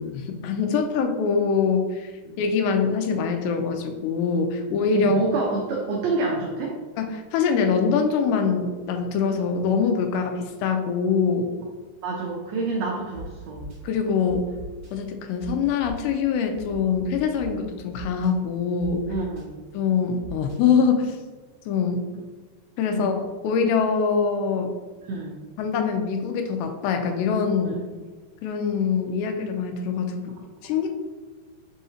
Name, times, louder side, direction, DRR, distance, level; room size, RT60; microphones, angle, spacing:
voice 1, 0.0-2.1 2.4-5.5 7.0-7.1 7.3-11.5 13.8-14.5 14.9-19.0 19.7-21.2 21.7-22.0 22.8-24.7 25.6-27.8 28.4-30.3 30.6-30.9, left 5 dB, 85° left, 4 dB, 2.7 m, -24 dB
voice 2, 4.6-6.8 12.0-13.7 19.1-19.6 22.9-23.1 25.0-25.4 27.6-28.0, right 3 dB, 90° right, -1 dB, 1.9 m, -28 dB
sound 1, 13.1-13.2 13.6-13.8 14.3-14.9 15.4-15.5 15.8-16.0 16.5-17.5 17.9-18.3 18.8-19.4 20.2-20.6, right 3 dB, 70° right, 1.5 m, -40 dB
6.6 x 2.8 x 2.8 m, 1.4 s
omnidirectional pair, 4.7 m